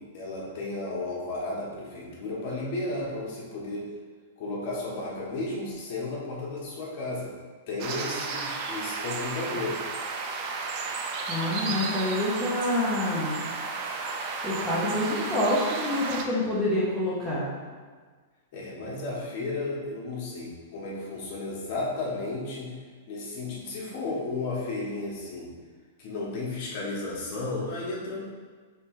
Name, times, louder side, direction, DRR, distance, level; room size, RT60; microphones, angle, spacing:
voice 1, 0.0-3.9 4.4-7.3 7.7-9.8 18.5-22.7 23.1-25.5 26.0-28.3, left 2 dB, 40° left, -4 dB, 1.1 m, -33 dB
sound 1, 7.8-16.2, right 4 dB, 35° right, 0.4 m, -33 dB
voice 2, 11.3-13.4 14.4-17.5, left 1 dB, ahead, -10 dB, 0.8 m, -27 dB
3.2 x 3.2 x 4.7 m, 1.5 s
supercardioid pair, 160°, 0 cm